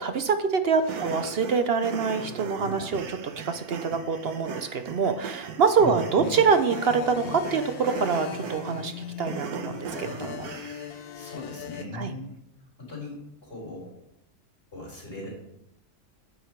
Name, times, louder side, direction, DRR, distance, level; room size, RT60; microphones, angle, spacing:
voice 1, 0.0-8.9 9.2-10.5 11.9-12.1, right 5 dB, 55° right, 9 dB, 0.7 m, -25 dB
sound 1, 0.8-11.0, right 6 dB, 80° right, 1.4 m, -38 dB
voice 2, 5.8-6.3 11.1-12.3 12.8-13.9 14.7-15.3, left 2 dB, 35° left, -2 dB, 4.3 m, -38 dB
sound 2, 6.2-11.9, left 10 dB, 80° left, 1.1 m, -39 dB
9.8 x 8.0 x 4.5 m, 0.81 s
omnidirectional pair, 1.6 m